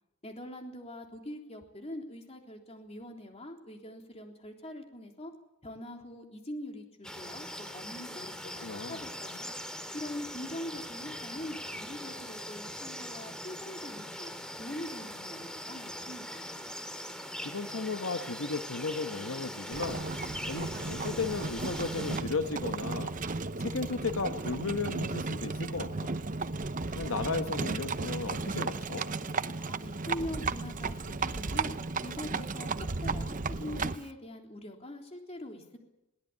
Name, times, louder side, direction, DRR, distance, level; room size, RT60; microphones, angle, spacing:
voice 1, 0.2-5.3 5.6-9.5 9.9-14.3 14.6-16.5 29.6-31.7 32.0-35.8, left 1 dB, 30° left, 3 dB, 3.5 m, -43 dB
sound 1, 7.0-22.2, equal, 5° left, 2.2 m, -41 dB
voice 2, 8.6-9.0 17.4-20.1 20.5-23.1 23.6-26.1 26.9-29.1, left 4 dB, 75° left, 7 dB, 1.2 m, -35 dB
Livestock farm animals working animals, 19.7-34.1, right 3 dB, 40° right, 0.8 m, -34 dB
22.0 x 19.0 x 8.6 m, 0.91 s
head